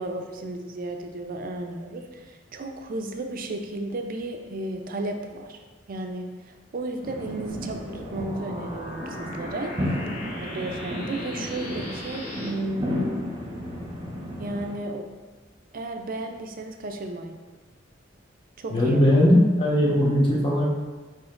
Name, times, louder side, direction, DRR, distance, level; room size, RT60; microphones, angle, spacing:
voice 1, 0.0-5.6 5.9-9.7 10.4-13.2 14.4-15.1 15.7-17.3 18.6-19.0, right 2 dB, 50° right, 4 dB, 0.5 m, -33 dB
sound 1, 7.0-14.7, left 1 dB, 25° right, 0.8 m, -33 dB
sound 2, 7.5-12.5, left 1 dB, 45° left, 1.2 m, -39 dB
voice 2, 18.7-20.7, left 1 dB, 30° left, -5 dB, 1.1 m, -19 dB
4.9 x 4.4 x 2.5 m, 1.3 s
head